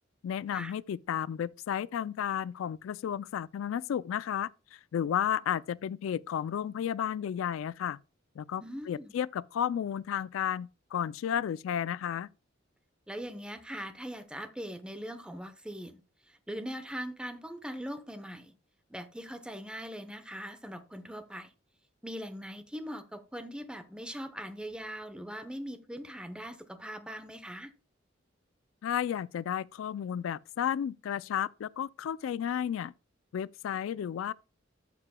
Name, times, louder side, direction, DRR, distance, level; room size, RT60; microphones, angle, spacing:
voice 1, 0.2-8.0 8.4-12.3 28.8-32.9 33.3-34.3, left 9 dB, 85° left, 0.3 m, -33 dB
voice 2, 8.6-9.1 13.1-16.0 16.3-18.5 18.9-21.5 22.0-27.7, equal, 5° right, 0.8 m, -41 dB
13.5 x 6.7 x 2.2 m
head